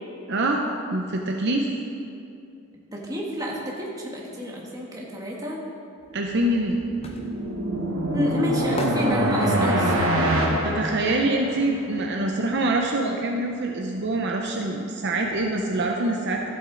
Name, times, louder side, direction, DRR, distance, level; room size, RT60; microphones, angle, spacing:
voice 1, 0.3-1.7 6.1-6.8 10.6-16.4, right 2 dB, 50° right, 1 dB, 0.7 m, -25 dB
voice 2, 2.9-5.6 8.1-10.6, left 1 dB, 15° right, -3 dB, 1.4 m, -29 dB
sound 1, 6.1-12.0 12.3-13.9 14.1-14.2, left 1 dB, 25° left, 0.7 m, -39 dB
sound 2, 6.5-11.7, right 1 dB, 70° right, 1.2 m, -25 dB
13.5 x 7.8 x 3.9 m, 2.6 s
head